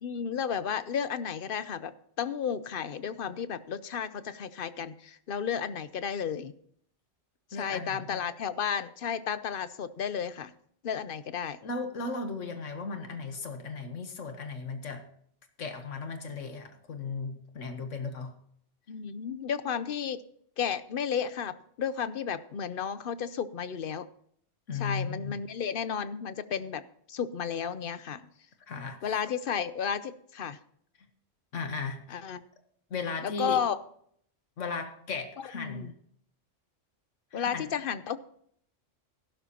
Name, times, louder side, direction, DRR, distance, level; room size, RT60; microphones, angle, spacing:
voice 1, 0.0-6.5 7.5-10.5 10.8-11.6 18.9-20.2 20.6-24.1 24.7-26.8 27.1-28.3 29.0-30.6 32.1-32.4 33.2-33.8 35.5-35.9 37.3-38.2, left 7 dB, 55° left, 14 dB, 0.8 m, -33 dB
voice 2, 7.5-8.2 11.6-15.0 15.6-18.3 24.7-25.3 28.7-29.1 31.5-32.2 32.9-33.6 34.6-35.9 37.3-37.6, left 4 dB, 85° left, 6 dB, 1.6 m, -36 dB
15.5 x 12.0 x 2.9 m, 0.65 s
omnidirectional pair, 1.2 m